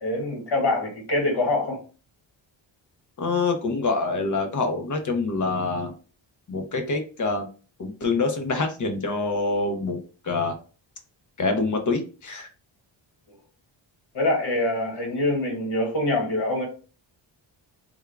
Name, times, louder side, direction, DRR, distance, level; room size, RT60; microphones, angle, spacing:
voice 1, 0.0-1.8 14.1-16.7, left 2 dB, 55° left, 1.6 m, -24 dB
voice 2, 3.2-5.9 6.5-7.5 7.8-10.6 11.4-12.5, left 3 dB, 40° left, 0.7 m, -26 dB
3.5 x 2.3 x 3.4 m
wide cardioid pair, 145°, 47 cm